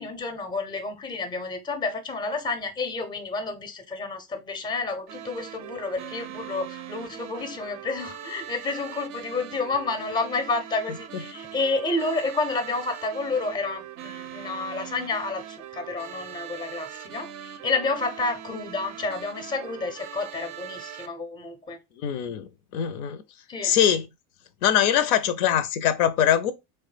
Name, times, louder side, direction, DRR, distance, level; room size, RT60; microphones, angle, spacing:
voice 1, 0.0-21.8 23.5-23.7, left 3 dB, 10° left, 0.5 m, -30 dB
sound 1, 5.1-21.1, right 10 dB, 40° right, 0.4 m, -41 dB
voice 2, 22.0-23.2 23.6-24.1 24.6-26.5, left 10 dB, 75° left, 0.6 m, -22 dB
3.1 x 2.1 x 3.2 m
hypercardioid pair, 95°, 44 cm